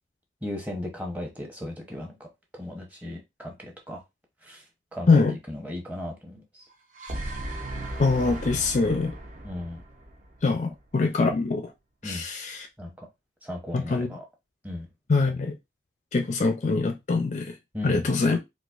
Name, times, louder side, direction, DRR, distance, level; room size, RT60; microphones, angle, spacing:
voice 1, 0.4-2.3 2.5-4.0 4.4-4.6 4.9-5.2 5.5-6.6 9.4-9.8 12.0-12.2 12.8-13.1 13.4-14.2 14.6-14.9 17.7-18.1, left 1 dB, 10° right, 0.8 m, -36 dB
sound 1, 6.7-10.9, right 1 dB, 40° right, 0.7 m, -36 dB
voice 2, 8.0-9.1 10.4-11.7 12.0-12.7 13.7-14.1 15.1-15.6 16.1-17.6 17.8-18.4, left 3 dB, 40° left, 0.4 m, -23 dB
4.0 x 2.4 x 2.4 m
head